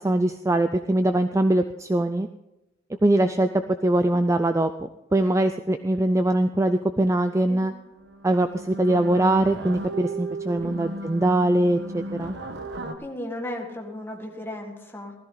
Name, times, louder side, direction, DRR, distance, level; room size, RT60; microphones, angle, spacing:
voice 1, 0.0-2.3 3.0-3.5 3.8-4.7 5.1-7.7 8.2-12.4, right 1 dB, 15° right, 9 dB, 0.4 m, -22 dB
sound 1, 7.5-7.7 7.9-12.9, right 2 dB, 55° right, 1.2 m, -35 dB
voice 2, 13.0-15.1, left 1 dB, 10° left, 0 dB, 1.8 m, -35 dB
16.0 x 13.5 x 3.9 m, 0.93 s
head